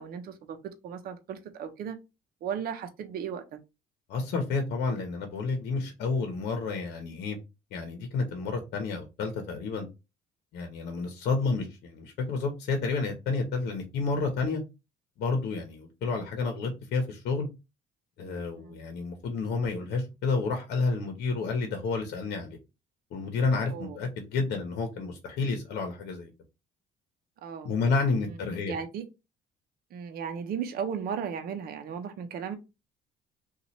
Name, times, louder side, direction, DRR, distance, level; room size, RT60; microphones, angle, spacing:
voice 1, 0.0-2.0 2.4-3.6 18.6-18.8 23.7-24.0 27.4-27.7 28.3-29.0 29.9-32.6, right 7 dB, 65° right, 0.7 m, -36 dB
voice 2, 4.1-7.4 7.7-9.9 10.5-14.6 15.2-17.5 18.2-22.6 23.1-26.3 27.6-28.7, left 4 dB, 75° left, 0.9 m, -30 dB
2.9 x 2.4 x 4.1 m
cardioid pair, 110°, 17 cm